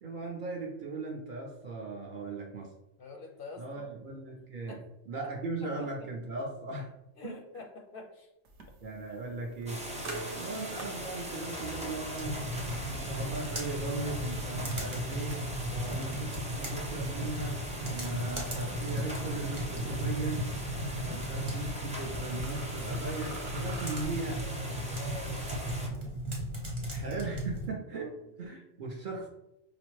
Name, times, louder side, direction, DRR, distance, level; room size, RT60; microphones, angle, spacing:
voice 1, 0.0-2.7 3.6-4.8 5.1-6.9 7.2-7.4 8.8-9.9 10.3-12.5 12.8-15.5 15.8-20.5 21.0-24.5 26.9-29.3, right 3 dB, 55° right, -1 dB, 0.6 m, -38 dB
voice 2, 3.0-3.9 4.7-4.8 5.6-5.9 7.2-8.3 15.7-16.1 21.1-21.4 24.4-26.9 27.9-28.1, left 3 dB, 60° left, 1 dB, 0.6 m, -47 dB
sound 1, 8.5-24.0, right 2 dB, 75° right, 1.0 m, -49 dB
sound 2, 9.7-25.9, equal, 10° right, 0.4 m, -41 dB
sound 3, 12.2-27.7, equal, 30° right, 1.0 m, -36 dB
4.9 x 2.0 x 3.0 m, 0.89 s
omnidirectional pair, 1.2 m